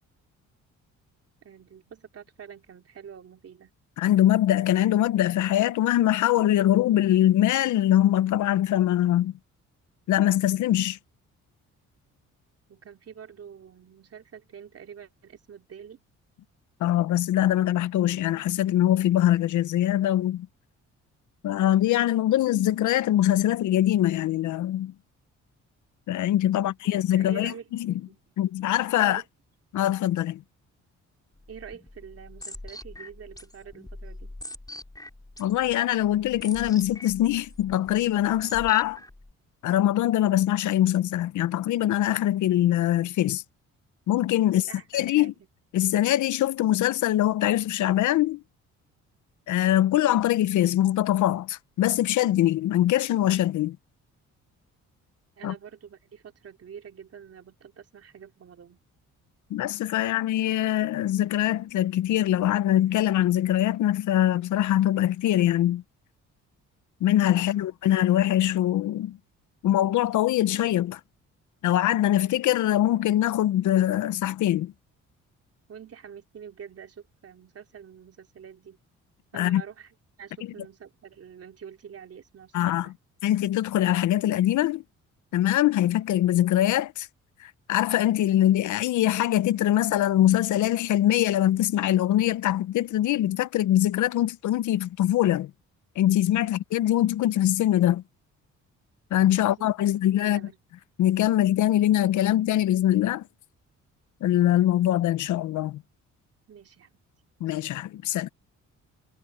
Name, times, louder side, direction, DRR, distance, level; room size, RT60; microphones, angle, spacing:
voice 1, 1.4-3.7 12.7-16.0 26.5-27.7 28.1-28.2 28.9-29.3 31.5-34.3 44.4-45.3 55.4-58.8 67.4-67.6 75.7-78.8 79.3-83.0 96.4-96.5 99.4-99.5 100.2-100.6 106.5-107.0, right 7 dB, 50° right, 3.1 m, -46 dB
voice 2, 4.0-9.3 10.1-11.0 16.8-20.5 21.4-24.9 26.1-27.5 27.8-27.9 28.4-29.2 29.7-30.4 35.4-39.0 39.6-43.4 44.1-44.7 44.9-45.3 45.7-48.4 49.5-53.8 55.4-55.5 59.5-65.8 67.0-69.2 69.6-71.0 71.6-74.7 79.3-79.6 82.5-82.9 83.2-84.8 85.3-87.1 87.4-95.5 96.0-98.0 99.1-100.5 101.0-103.2 104.2-105.8 107.4-108.3, left 13 dB, 75° left, 0.9 m, -23 dB
sound 1, 31.4-39.3, left 2 dB, 10° left, 3.5 m, -43 dB
cardioid pair, 90°, 30 cm